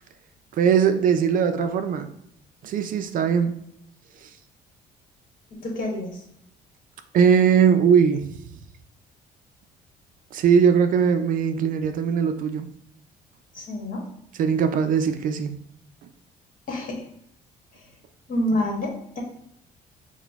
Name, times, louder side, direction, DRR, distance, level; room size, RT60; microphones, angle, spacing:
voice 1, 0.5-2.1 2.6-3.6 4.2-4.3 7.1-8.3 10.3-12.7 14.4-15.6, right 7 dB, 55° right, 9 dB, 0.4 m, -20 dB
voice 2, 5.6-6.2 13.5-14.1 16.7-17.1 18.3-19.2, left 1 dB, 55° left, 0 dB, 1.3 m, -27 dB
4.9 x 2.1 x 3.4 m, 0.74 s
cardioid pair, 110°, 17 cm